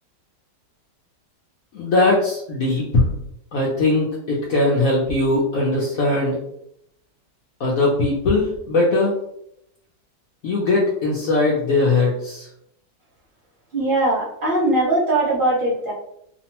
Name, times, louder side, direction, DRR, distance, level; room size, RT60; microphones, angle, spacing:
voice 1, 1.7-3.0 3.5-6.4 7.6-9.1 10.4-12.5, left 2 dB, 70° left, -4 dB, 0.9 m, -20 dB
voice 2, 13.7-15.9, right 1 dB, 35° right, -10 dB, 1.2 m, -20 dB
2.9 x 2.1 x 2.8 m, 0.75 s
omnidirectional pair, 1.9 m